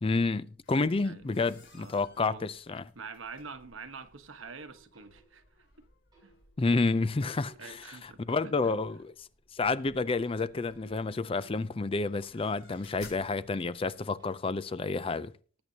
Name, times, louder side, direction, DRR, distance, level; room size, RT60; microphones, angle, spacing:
voice 1, 0.0-2.8 6.6-7.8 8.0-9.1 9.5-15.3, left 3 dB, 25° left, 0.4 m, -30 dB
sound 1, 0.6-14.2, left 3 dB, 65° left, 4.5 m, -59 dB
voice 2, 1.7-2.5 2.9-5.7 6.2-6.3 7.6-8.7, right 4 dB, 80° right, 1.2 m, -46 dB
sound 2, 4.4-5.7 6.1-6.7 7.0-8.3 10.0-12.5 14.2-14.9, right 2 dB, 20° right, 7.1 m, -59 dB
19.0 x 8.7 x 2.8 m
head